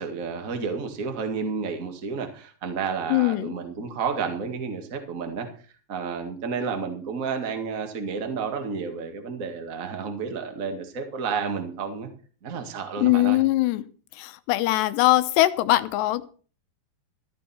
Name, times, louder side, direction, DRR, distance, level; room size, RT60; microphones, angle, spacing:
voice 1, 0.0-5.5 5.9-12.1 12.4-13.4, right 5 dB, 45° right, 5 dB, 1.1 m, -31 dB
voice 2, 3.1-3.5 13.0-13.9 14.1-16.3, left 17 dB, 85° left, 13 dB, 3.0 m, -21 dB
13.5 x 13.0 x 4.4 m, 0.40 s
omnidirectional pair, 4.9 m